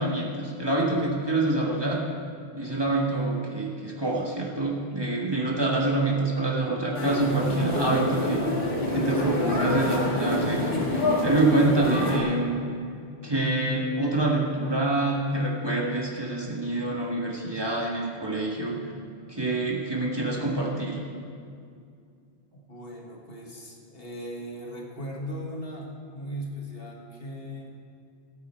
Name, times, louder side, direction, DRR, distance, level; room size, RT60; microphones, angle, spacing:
voice 1, 0.0-2.0 2.5-8.4 8.9-12.7 13.2-18.8 19.3-21.0, right 2 dB, 25° right, -3 dB, 1.7 m, -26 dB
sound 1, 6.9-12.2, left 1 dB, 85° left, 2.3 m, -27 dB
voice 2, 22.7-27.7, equal, 65° left, 0 dB, 1.8 m, -38 dB
17.5 x 8.6 x 4.5 m, 2.4 s
omnidirectional pair, 1.1 m